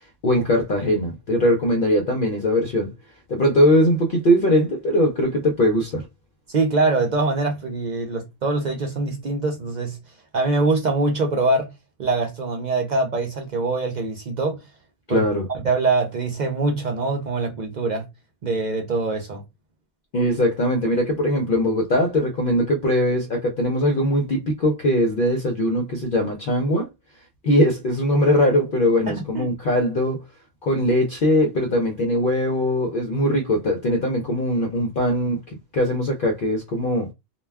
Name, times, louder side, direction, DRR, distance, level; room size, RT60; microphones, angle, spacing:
voice 1, 0.2-2.9 3.3-6.1 15.1-15.5 20.1-26.9 27.4-30.2 30.6-37.1, equal, 55° left, 0.7 m, -21 dB
voice 2, 6.5-10.0 10.3-11.7 12.0-14.6 15.1-15.2 15.5-18.1 18.4-19.4 29.1-29.5, right 3 dB, 55° right, 0.5 m, -23 dB
2.2 x 2.2 x 3.3 m
omnidirectional pair, 1.3 m